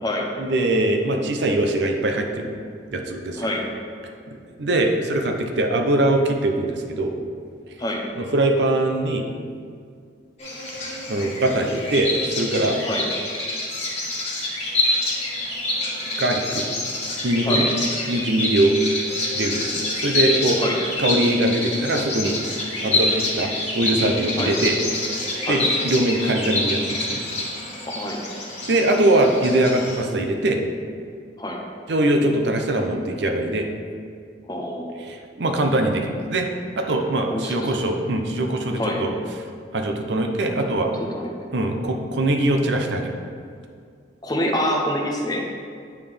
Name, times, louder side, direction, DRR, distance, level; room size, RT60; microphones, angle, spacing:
voice 1, 0.4-2.5 2.9-3.5 4.3-7.1 8.2-9.2 10.7-12.8 16.2-16.7 17.2-17.7 18.1-18.7 19.3-20.6 21.0-22.4 22.8-24.8 25.5-27.2 28.7-30.6 31.9-33.7 35.0-36.5 36.8-39.1 39.7-40.9 41.5-43.2, right 1 dB, 65° right, 3 dB, 0.6 m, -22 dB
voice 2, 3.4-3.7 7.8-8.0 12.8-13.1 17.4-17.7 20.6-20.8 24.4-24.6 25.4-25.6 28.0-28.2 31.4-31.6 34.5-34.9 37.3-37.9 38.8-39.0 41.1-41.3 44.2-45.5, left 1 dB, 20° left, 0 dB, 0.6 m, -26 dB
Bird vocalization bird call bird song, 10.4-30.0, left 2 dB, 35° left, 1.4 m, -27 dB
9.0 x 3.6 x 3.3 m, 2.2 s
head